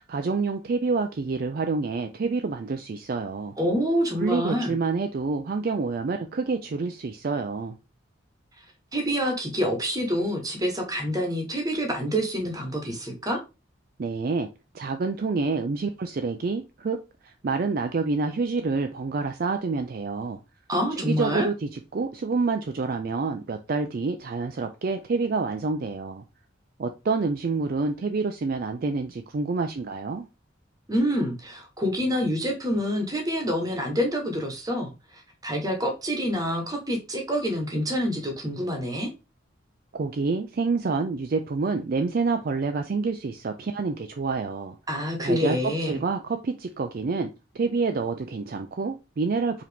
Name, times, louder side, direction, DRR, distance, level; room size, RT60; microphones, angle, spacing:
voice 1, 0.0-3.5 4.2-7.8 14.0-14.5 14.7-17.0 17.2-20.4 21.0-26.2 26.8-30.3 39.9-44.8 45.2-47.3 47.5-49.6, right 4 dB, 45° right, 0.4 m, -28 dB
voice 2, 3.6-4.7 8.9-13.4 20.7-21.5 30.9-39.1 44.9-46.0, equal, 20° right, 1.0 m, -27 dB
4.8 x 2.9 x 3.4 m
head